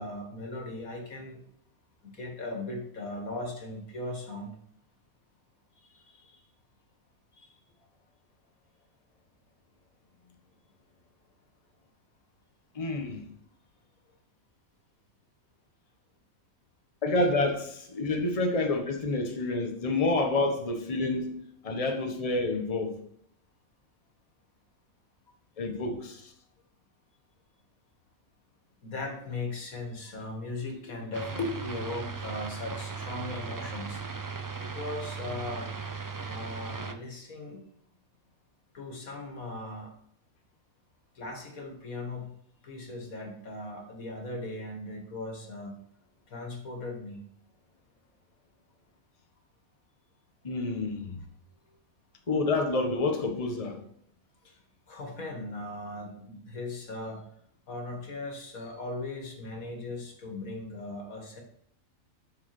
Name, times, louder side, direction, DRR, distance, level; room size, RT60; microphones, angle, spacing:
voice 1, 0.0-1.4 2.0-4.5 5.8-6.4 7.4-7.5 28.8-34.0 34.6-35.7 36.2-37.6 38.7-39.9 41.1-42.3 42.6-45.7 46.3-47.2 54.4-54.6 54.9-57.3 57.7-61.4, left 2 dB, 80° left, 2.5 m, -38 dB
voice 2, 12.7-13.2 17.0-22.9 25.6-26.3 50.4-51.2 52.3-53.8, left 2 dB, 25° left, 1.3 m, -28 dB
sound 1, 31.1-36.9, right 5 dB, 30° right, 0.3 m, -37 dB
8.4 x 6.4 x 6.1 m
omnidirectional pair, 1.4 m